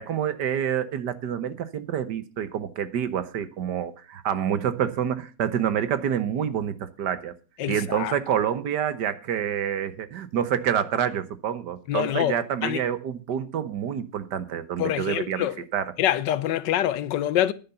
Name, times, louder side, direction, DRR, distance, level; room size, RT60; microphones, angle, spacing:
voice 1, 0.0-7.3 7.7-15.9, right 9 dB, 75° right, 1.6 m, -27 dB
voice 2, 7.6-8.1 11.9-12.3 12.6-12.8 14.8-15.6 16.0-17.5, left 12 dB, 85° left, 1.4 m, -25 dB
11.0 x 9.9 x 5.5 m
omnidirectional pair, 1.9 m